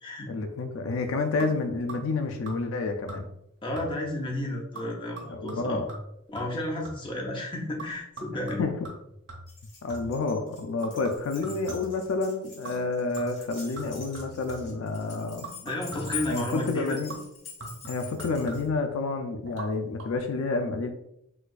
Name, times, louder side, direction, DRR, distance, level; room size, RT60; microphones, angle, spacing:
voice 1, 0.3-3.3 5.3-5.9 8.6-8.7 9.8-15.5 16.3-17.1 17.9-20.9, left 3 dB, 70° left, 6 dB, 0.3 m, -29 dB
sound 1, 1.4-2.2 2.5-2.8 3.1-3.5 3.8-4.2 4.7-7.2 7.8-10.3 10.8-12.1 12.6-12.9 13.2-14.8 15.4-16.5 17.1-18.9 19.4-19.7 20.0-20.1, right 2 dB, 60° right, 1.2 m, -43 dB
voice 2, 3.6-5.8 6.3-8.6 15.7-17.0, left 1 dB, 25° left, 0 dB, 0.6 m, -32 dB
Keys jangling, 9.5-18.7, left 6 dB, 55° left, 1.3 m, -44 dB
4.1 x 2.3 x 2.3 m, 0.78 s
head